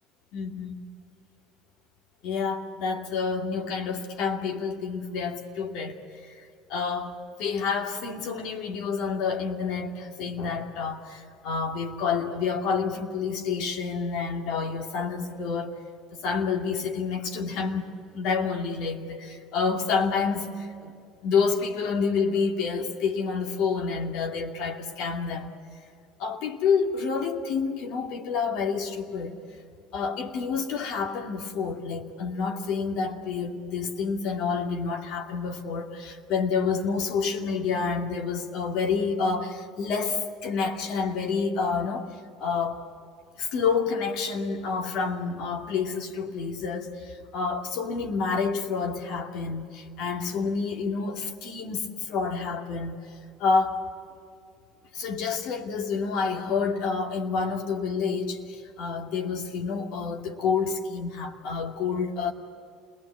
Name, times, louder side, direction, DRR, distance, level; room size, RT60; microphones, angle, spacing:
voice 1, 0.3-0.9 2.2-6.0 6.3-15.7 16.1-17.8 18.1-20.9 21.2-25.5 26.2-29.4 29.9-42.1 42.4-42.8 43.4-53.0 53.4-53.8 54.9-62.3, left 5 dB, 65° left, 2.5 m, -28 dB
28.0 x 20.0 x 8.4 m
hypercardioid pair, 75°, 0 cm